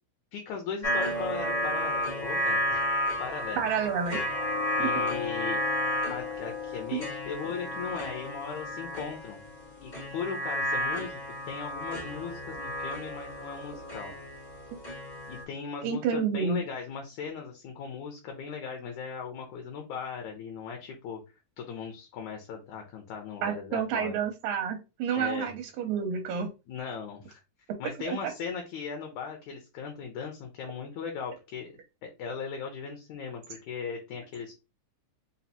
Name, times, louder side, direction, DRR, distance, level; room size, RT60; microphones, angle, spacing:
voice 1, 0.3-2.9 3.2-3.7 4.8-5.6 6.1-9.4 9.8-14.1 15.3-21.2 21.6-24.1 25.2-25.5 26.7-27.4 27.8-34.5, left 6 dB, 75° left, 3 dB, 2.1 m, -38 dB
sound 1, 0.8-15.4, left 1 dB, 55° left, 0.5 m, -32 dB
voice 2, 3.6-4.2 4.8-4.9 6.9-7.0 15.8-16.6 23.4-26.5 28.1-28.2, right 7 dB, 85° right, 5 dB, 2.0 m, -29 dB
5.3 x 2.5 x 2.7 m, 0.28 s
omnidirectional pair, 3.5 m